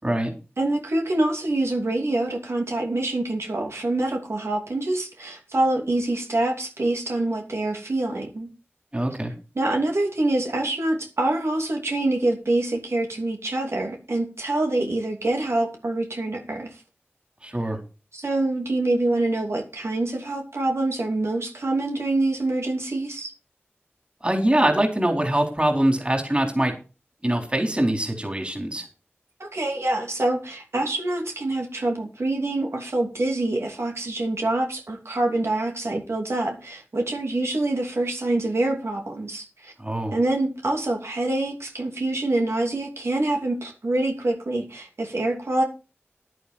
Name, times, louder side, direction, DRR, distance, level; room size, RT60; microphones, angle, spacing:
voice 1, 0.6-8.5 9.6-16.7 18.1-23.3 29.4-39.7 40.1-45.6, right 2 dB, 75° right, 1 dB, 2.8 m, -25 dB
voice 2, 8.9-9.3 17.4-17.8 24.2-26.7 27.2-28.9 39.8-40.2, right 1 dB, 25° right, 3 dB, 4.3 m, -23 dB
11.0 x 11.0 x 4.4 m, 0.33 s
wide cardioid pair, 60°, 5 cm